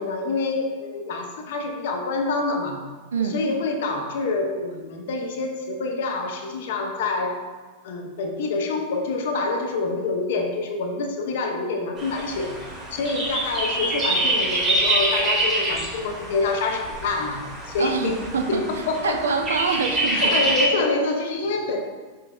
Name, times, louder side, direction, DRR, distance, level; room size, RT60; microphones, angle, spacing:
voice 1, 0.0-2.9 3.2-7.4 7.8-18.2 18.5-19.2 20.1-21.8, left 3 dB, 55° left, 3 dB, 0.6 m, -26 dB
voice 2, 3.1-3.4 17.8-20.4, right 5 dB, 65° right, 4 dB, 0.4 m, -26 dB
sound 1, 12.0-20.7, right 1 dB, 20° right, 1.2 m, -26 dB
5.4 x 3.8 x 2.4 m, 1.4 s
figure-of-eight pair, 90°, 0 cm